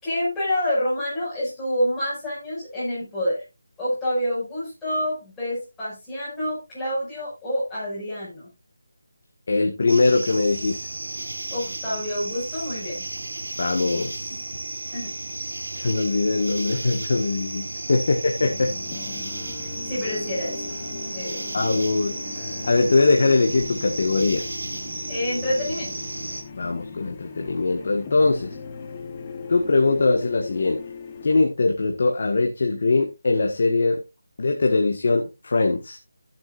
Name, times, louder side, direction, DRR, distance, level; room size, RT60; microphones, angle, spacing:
voice 1, 0.0-3.4 3.8-8.5 11.5-13.1 13.8-14.0 14.9-15.1 17.9-18.0 19.6-20.7 21.1-21.5 25.1-26.0, equal, 5° left, -11 dB, 5.7 m, -28 dB
voice 2, 9.5-10.8 13.6-14.1 15.8-18.7 21.5-22.1 22.6-24.4 26.5-28.5 29.5-30.8 31.2-34.0 34.4-36.0, left 3 dB, 45° left, 2 dB, 1.5 m, -21 dB
sound 1, 9.9-26.4, right 2 dB, 85° right, 3.5 m, -33 dB
sound 2, 18.5-31.3, left 5 dB, 20° left, 1.1 m, -38 dB
15.5 x 7.7 x 2.5 m, 0.23 s
figure-of-eight pair, 175°, 0 cm